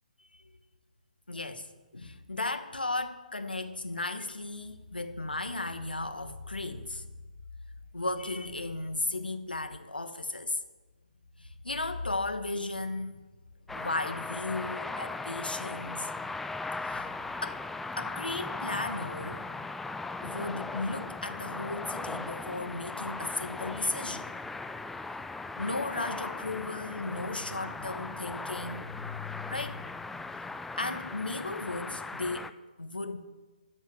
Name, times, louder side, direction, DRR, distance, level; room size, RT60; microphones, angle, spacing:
voice 1, 0.2-0.6 1.3-7.1 7.9-10.6 11.4-13.2 13.7-16.1 16.8-17.1 17.4-17.6 18.0-19.5 20.2-24.3 25.6-29.9 30.8-33.2, left 2 dB, 85° left, 9 dB, 1.2 m, -35 dB
sound 1, 13.7-32.5, left 3 dB, 5° left, 0.3 m, -38 dB
13.5 x 5.6 x 9.4 m, 1.2 s
figure-of-eight pair, 135°, 5 cm